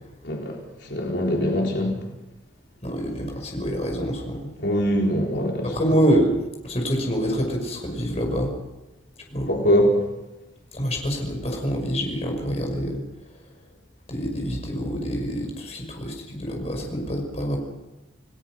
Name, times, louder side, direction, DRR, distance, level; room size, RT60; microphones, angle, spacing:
voice 1, 0.2-0.6 0.9-2.0 4.6-5.7 9.5-10.0, equal, 65° left, -1 dB, 4.0 m, -22 dB
voice 2, 2.8-4.5 5.6-6.3 6.6-8.5 9.3-9.5 10.7-13.0 14.1-17.6, equal, 35° left, 1 dB, 5.7 m, -26 dB
29.5 x 18.0 x 6.3 m, 1.0 s
head